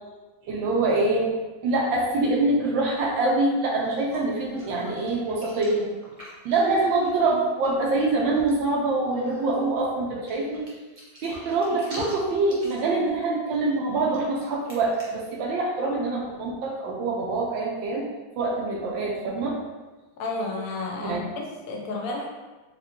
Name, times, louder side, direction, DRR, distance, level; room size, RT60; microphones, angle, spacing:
voice 1, 0.5-1.3 1.6-5.9 6.4-10.6 11.2-18.1 18.4-19.6 21.0-21.2, right 2 dB, 80° right, -2 dB, 1.3 m, -25 dB
sound 1, 3.5-3.6 3.8-7.7 8.0-8.1 8.3-8.7 9.1-9.7 10.3-15.3, right 1 dB, 45° right, 0.4 m, -45 dB
voice 2, 20.2-22.3, left 2 dB, 80° left, 0 dB, 0.7 m, -31 dB
4.5 x 2.4 x 2.8 m, 1.2 s
omnidirectional pair, 2.1 m